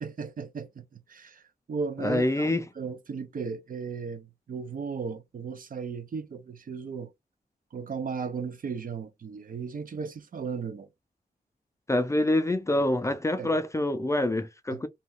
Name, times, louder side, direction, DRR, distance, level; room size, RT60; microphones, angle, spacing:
voice 1, 0.0-1.4 1.7-7.1 7.7-10.9 13.4-13.5 14.7-14.9, right 5 dB, 60° right, 0.5 m, -36 dB
voice 2, 2.0-2.6 11.9-14.9, left 1 dB, 20° left, 0.4 m, -26 dB
2.9 x 2.3 x 3.6 m
wide cardioid pair, 145°, 16 cm